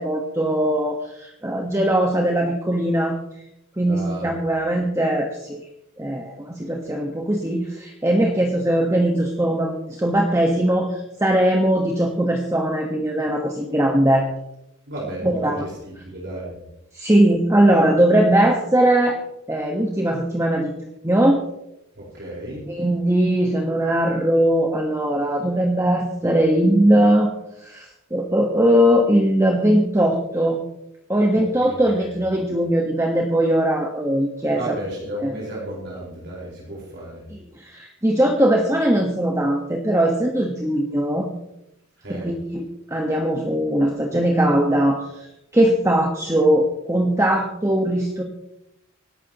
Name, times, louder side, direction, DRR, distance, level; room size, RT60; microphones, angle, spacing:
voice 1, 0.0-3.2 3.8-5.6 6.0-14.3 15.2-15.6 16.9-19.2 19.5-20.7 21.0-21.4 22.7-27.3 27.6-30.6 31.1-34.6 35.2-35.3 37.3-41.3 42.1-45.3 45.5-48.2, right 1 dB, 15° right, 1 dB, 1.4 m, -20 dB
voice 2, 3.8-4.3 14.9-16.5 22.0-22.6 31.3-32.2 34.5-37.2 42.0-42.3, right 1 dB, 60° right, -5 dB, 4.9 m, -33 dB
24.5 x 12.0 x 3.0 m, 0.83 s
head